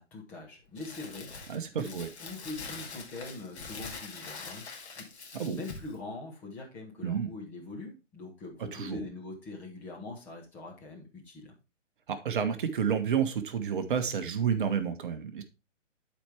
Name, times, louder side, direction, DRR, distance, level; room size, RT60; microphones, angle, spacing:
voice 1, 0.0-5.1 5.5-11.5, left 2 dB, 5° left, -1 dB, 0.6 m, -43 dB
Crumpling crinkling, 0.8-6.0, left 4 dB, 60° left, 2.3 m, -44 dB
voice 2, 1.5-2.1 5.3-5.6 7.0-7.3 8.7-9.0 12.1-15.4, right 7 dB, 40° right, 8 dB, 1.2 m, -30 dB
11.5 x 4.5 x 3.4 m, 0.29 s
hypercardioid pair, 150°, 38 cm